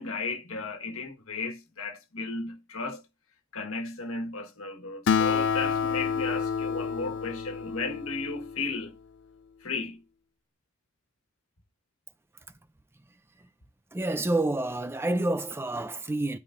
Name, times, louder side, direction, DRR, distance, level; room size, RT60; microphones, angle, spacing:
voice 1, 0.0-3.0 3.5-8.9 9.6-10.0, left 3 dB, 70° left, 1.5 m, -34 dB
Acoustic guitar, 5.1-8.8, left 6 dB, 55° left, 0.4 m, -28 dB
voice 2, 13.9-16.4, right 2 dB, 10° right, 0.4 m, -28 dB
12.5 x 5.5 x 2.6 m
head